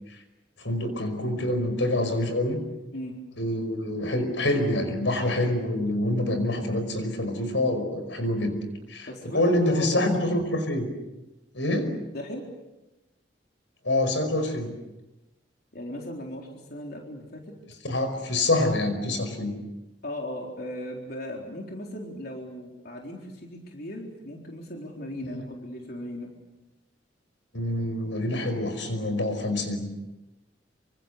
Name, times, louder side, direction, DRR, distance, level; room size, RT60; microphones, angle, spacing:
voice 1, 0.6-2.6 3.4-8.6 8.9-9.1 9.3-10.9 11.5-12.0 13.8-14.7 17.8-19.6 25.2-25.4 27.5-29.9, left 1 dB, 85° left, 8 dB, 5.4 m, -26 dB
voice 2, 9.1-10.0 12.1-12.5 15.7-17.5 20.0-26.3, left 1 dB, 55° left, 0 dB, 4.0 m, -37 dB
28.0 x 25.5 x 6.8 m, 1.0 s
head